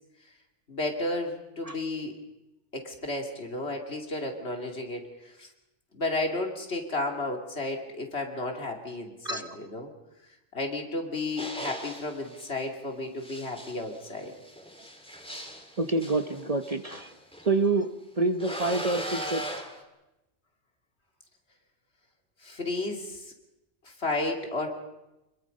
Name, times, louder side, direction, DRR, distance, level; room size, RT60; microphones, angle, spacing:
voice 1, 0.7-2.1 2.7-5.5 5.9-9.9 10.5-14.3 22.4-23.2 24.0-24.7, left 2 dB, 60° left, 3 dB, 2.9 m, -33 dB
sound 1, 11.4-12.5 13.2-17.5 18.4-19.8, equal, 5° left, 2.1 m, -39 dB
voice 2, 15.8-17.1 17.4-19.4, right 3 dB, 35° right, 8 dB, 0.9 m, -27 dB
26.5 x 21.5 x 5.4 m, 0.96 s
omnidirectional pair, 1.2 m